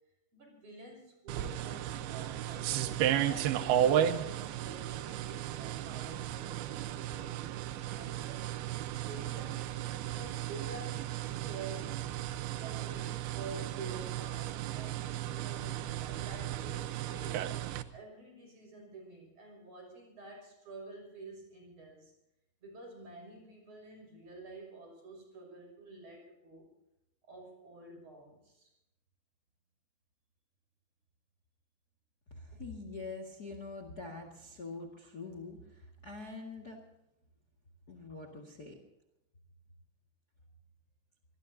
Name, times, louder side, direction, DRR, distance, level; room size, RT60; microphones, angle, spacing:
voice 1, 0.3-7.3 7.8-8.6 8.9-11.1 11.4-12.3 12.6-17.5 17.9-22.1 22.6-26.7 27.3-28.7 32.5-32.6, right 2 dB, 40° right, 2 dB, 7.4 m, -49 dB
sound 1, 1.3-17.8, right 11 dB, 90° right, 2.8 m, -34 dB
voice 2, 32.3-36.8 37.9-38.8, left 3 dB, 35° left, 5 dB, 1.8 m, -45 dB
25.5 x 19.0 x 2.8 m, 0.89 s
omnidirectional pair, 4.4 m